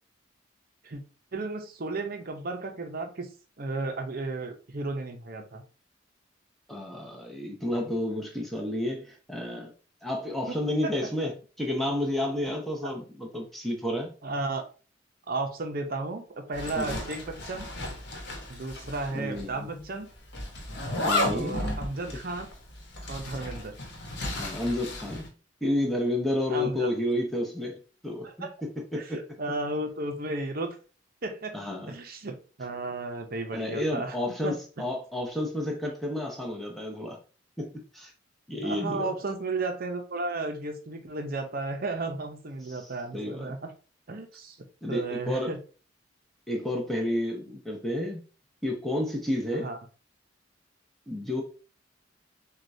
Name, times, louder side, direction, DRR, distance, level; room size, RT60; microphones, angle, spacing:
voice 1, 1.3-3.3 3.6-5.6 10.8-11.1 12.4-12.6 14.2-14.6 15.3-17.7 18.5-20.1 21.2-22.5 23.1-23.8 26.5-26.9 28.2-28.5 28.9-30.8 31.2-31.6 31.9-34.2 34.4-34.6 38.6-43.7 44.1-44.6 44.9-45.6 49.5-49.8, right 3 dB, 50° right, 0.7 m, -34 dB
voice 2, 6.7-9.7 10.0-11.3 11.6-14.1 16.8-17.0 19.1-19.8 21.0-21.6 24.4-25.3 25.6-27.8 28.0-28.5 28.9-29.2 31.5-31.9 33.5-37.2 37.6-38.1 38.5-39.1 42.7-42.8 43.1-43.5 44.8-45.5 46.5-48.2 48.6-49.7 51.1-51.4, left 1 dB, ahead, 0.7 m, -31 dB
Zipper (clothing), 16.5-19.1 19.4-19.5 20.3-25.3, left 1 dB, 60° left, 1.0 m, -33 dB
6.4 x 2.4 x 2.6 m
head